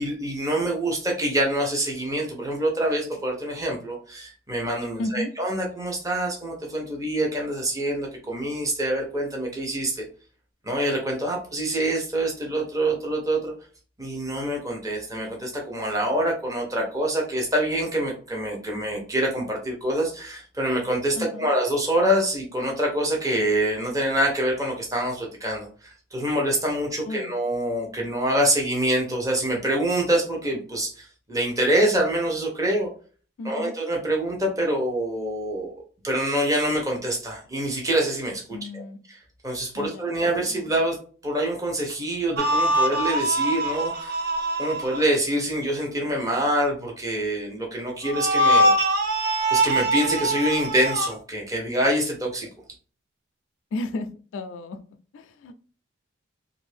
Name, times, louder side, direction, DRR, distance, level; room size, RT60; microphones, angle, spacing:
voice 1, 0.0-10.0 10.6-13.5 14.0-32.9 33.4-35.7 36.0-38.8 39.1-39.2 39.4-41.0 41.2-44.3 44.6-48.7 49.5-52.5, right 1 dB, 15° right, -1 dB, 0.7 m, -25 dB
voice 2, 5.0-5.3 21.2-21.5 27.1-27.3 33.4-33.7 38.5-39.0 39.8-40.2 40.5-40.7 53.7-54.1 54.3-54.8 55.1-55.6, left 2 dB, 70° left, 8 dB, 0.3 m, -33 dB
sound 1, 42.4-45.1 48.0-51.1, right 1 dB, 50° right, 0.5 m, -23 dB
2.6 x 2.5 x 3.2 m, 0.41 s
head